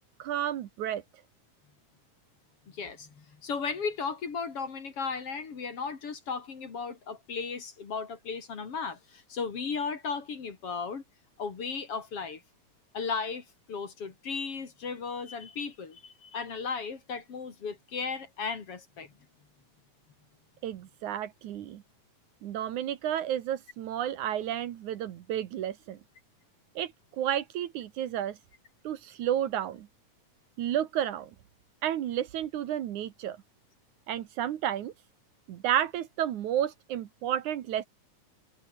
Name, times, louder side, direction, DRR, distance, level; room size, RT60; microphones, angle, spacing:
voice 1, 0.2-1.0 20.6-21.8 22.4-26.0 26.8-28.4 28.8-29.9 30.6-31.3 31.8-33.4 34.1-34.9 35.5-37.9, right 11 dB, 70° right, 2.6 m, -31 dB
voice 2, 2.7-11.0 11.4-12.4 12.9-19.1, left 5 dB, 45° left, 3.4 m, -35 dB
omnidirectional pair, 3.7 m